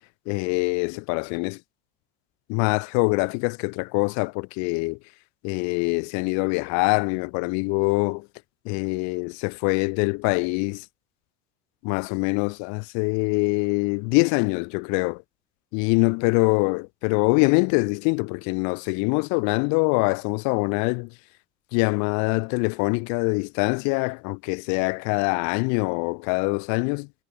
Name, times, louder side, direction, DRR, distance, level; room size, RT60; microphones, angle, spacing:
voice 1, 0.3-1.6 2.5-5.0 5.4-8.3 8.7-10.8 11.8-15.2 15.7-21.1 21.7-27.1, left 35 dB, 65° left, 0.5 m, -24 dB
supercardioid pair, 95°, 31 cm